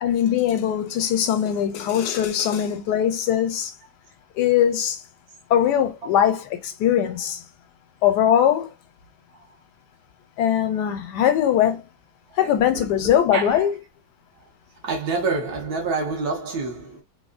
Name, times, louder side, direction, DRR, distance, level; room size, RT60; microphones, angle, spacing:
voice 1, 0.0-3.7 4.4-5.0 5.5-7.4 8.0-8.7 10.4-11.8 12.4-13.7, left 10 dB, 80° left, 1.2 m, -21 dB
voice 2, 12.3-13.7 14.4-14.5 14.8-17.0, right 4 dB, 70° right, 1.4 m, -28 dB
3.5 x 2.1 x 2.4 m
omnidirectional pair, 1.8 m